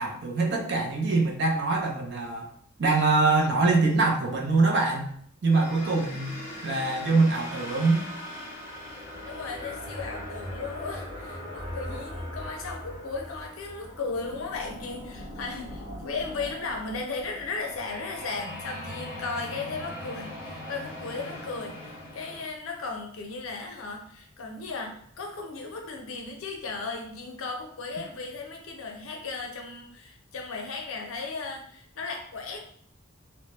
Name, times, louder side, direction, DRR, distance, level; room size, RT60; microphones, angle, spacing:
voice 1, 0.0-2.5 2.8-5.1 5.4-8.1, right 3 dB, 55° right, 1 dB, 0.5 m, -24 dB
sound 1, 5.5-22.4, left 1 dB, 30° right, 1.0 m, -40 dB
voice 2, 5.8-6.2 9.3-32.6, left 4 dB, 80° left, 2 dB, 0.5 m, -36 dB
2.1 x 2.0 x 2.9 m, 0.63 s
head